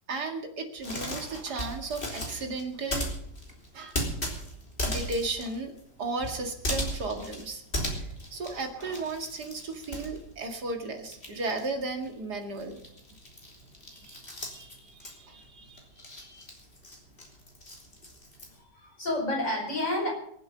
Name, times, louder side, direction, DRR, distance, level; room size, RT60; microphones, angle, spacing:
voice 1, 0.1-3.1 3.7-4.0 4.8-5.7 6.0-7.6 7.9-12.8 14.0-14.2 14.5-16.4, right 3 dB, 75° right, 4 dB, 2.6 m, -35 dB
sound 1, 0.8-10.8 11.0-18.6, equal, 35° left, 3.5 m, -37 dB
voice 2, 18.5-20.1, left 1 dB, 50° left, -2 dB, 6.1 m, -30 dB
23.5 x 7.9 x 6.7 m, 0.72 s
omnidirectional pair, 1.7 m